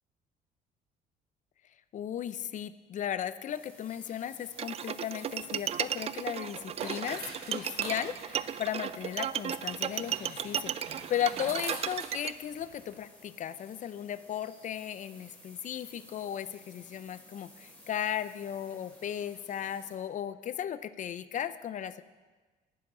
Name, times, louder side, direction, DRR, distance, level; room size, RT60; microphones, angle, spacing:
voice 1, 1.9-7.2 7.5-22.0, left 10 dB, 50° left, 15 dB, 0.6 m, -36 dB
sound 1, 3.5-20.0, left 1 dB, 10° left, 4.6 m, -56 dB
Bowed string instrument, 4.6-12.3, right 9 dB, 35° right, 0.4 m, -35 dB
sound 2, 5.3-12.9, right 4 dB, 65° right, 2.2 m, -46 dB
10.5 x 9.8 x 6.1 m, 1.3 s
cardioid pair, 110°, 17 cm